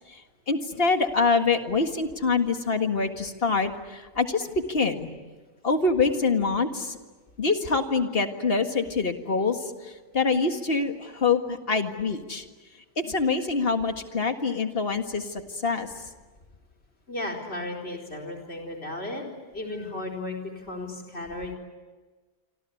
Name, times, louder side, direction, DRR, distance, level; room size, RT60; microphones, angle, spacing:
voice 1, 0.5-5.1 5.6-7.0 7.4-12.4 13.0-15.9, left 4 dB, 65° left, 6 dB, 2.1 m, -25 dB
voice 2, 17.1-19.2 19.5-21.5, left 2 dB, 90° left, 6 dB, 4.7 m, -34 dB
27.0 x 26.0 x 8.5 m, 1.3 s
omnidirectional pair, 1.1 m